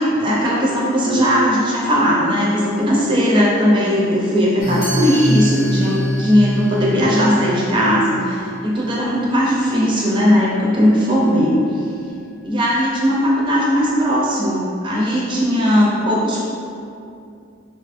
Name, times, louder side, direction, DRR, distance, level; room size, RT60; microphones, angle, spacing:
voice 1, 0.0-11.6 12.4-16.4, equal, 25° right, -5 dB, 0.4 m, -17 dB
sound 1, 4.6-9.2, equal, 80° left, 0.5 m, -24 dB
Chime, 4.8-10.7, right 1 dB, 25° left, 0.6 m, -35 dB
2.8 x 2.5 x 2.4 m, 2.5 s
head